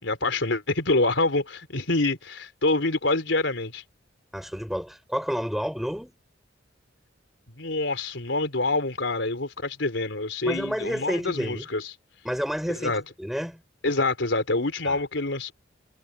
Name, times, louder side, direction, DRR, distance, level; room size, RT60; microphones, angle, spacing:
voice 1, 0.0-3.8 7.5-11.8 12.7-13.0 13.8-15.5, left 2 dB, 80° left, 3.9 m, -26 dB
voice 2, 4.3-6.2 10.4-11.7 12.2-12.9 13.2-13.6 14.9-15.0, equal, ahead, 6.1 m, -30 dB
head